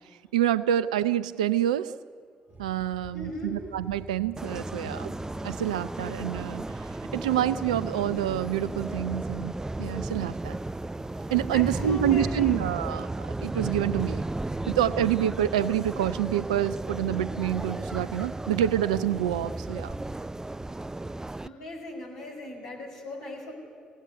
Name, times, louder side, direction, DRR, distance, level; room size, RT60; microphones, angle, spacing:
voice 1, 0.3-1.9 2.6-5.1 5.4-6.8 7.1-10.6 11.3-13.1 13.4-14.2 14.7-19.9, right 11 dB, 80° right, 16 dB, 0.6 m, -27 dB
sound 1, 2.5-20.1, right 2 dB, 45° right, 2.3 m, -46 dB
voice 2, 3.1-3.7 11.4-12.7 21.4-23.5, left 1 dB, 75° left, -1 dB, 5.4 m, -38 dB
sound 2, 4.4-21.5, right 2 dB, 15° right, 0.6 m, -34 dB
27.5 x 17.0 x 9.7 m, 2.2 s
figure-of-eight pair, 40°, 4 cm